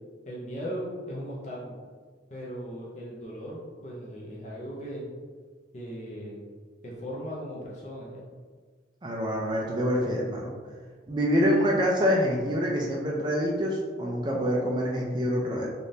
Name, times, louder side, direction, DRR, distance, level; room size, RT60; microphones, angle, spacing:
voice 1, 0.3-1.8 2.3-5.0 5.7-6.5 6.8-8.3, equal, 40° left, -5 dB, 0.6 m, -38 dB
voice 2, 9.0-10.5 11.1-15.7, equal, 25° right, -2 dB, 0.3 m, -26 dB
3.5 x 2.5 x 2.7 m, 1.6 s
head